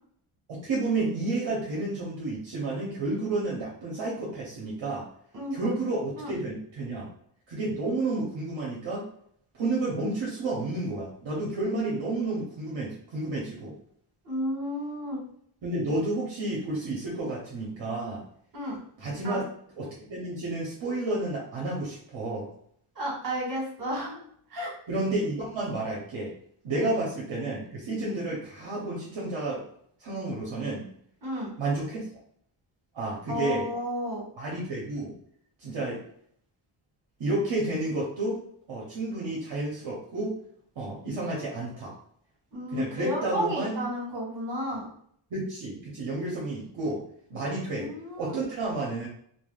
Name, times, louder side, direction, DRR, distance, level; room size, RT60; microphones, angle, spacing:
voice 1, 0.5-5.1 5.5-7.1 7.5-9.0 9.5-13.7 15.6-18.2 19.0-19.4 19.8-22.5 24.9-26.3 26.6-29.6 30.0-30.9 31.6-32.0 32.9-33.6 34.4-35.1 35.6-36.0 37.2-38.4 38.7-40.3 40.8-41.9 42.7-43.8 45.3-47.0 47.3-47.9 48.2-49.1, right 2 dB, 65° right, -4 dB, 0.8 m, -31 dB
voice 2, 5.3-5.7 6.2-6.3 14.2-15.2 18.5-18.8 19.2-19.4 22.9-24.2 24.5-24.7 26.7-26.9 31.2-31.5 33.3-34.2 42.5-44.9 47.6-48.4, equal, 40° right, -3 dB, 1.2 m, -32 dB
3.3 x 2.2 x 2.3 m, 0.66 s
wide cardioid pair, 155°, 49 cm